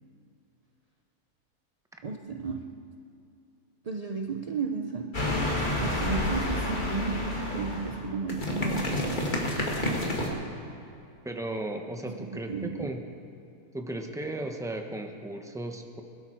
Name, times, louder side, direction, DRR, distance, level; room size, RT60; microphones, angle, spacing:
voice 1, 2.0-2.7 3.8-5.2 5.8-9.4 12.0-12.9, right 4 dB, 50° right, 3 dB, 0.4 m, -34 dB
sound 1, 5.1-10.3, left 1 dB, 30° left, 2.1 m, -29 dB
voice 2, 11.2-13.0 13.7-16.0, right 1 dB, 5° right, 4 dB, 0.8 m, -35 dB
21.0 x 12.5 x 4.5 m, 2.6 s
omnidirectional pair, 1.6 m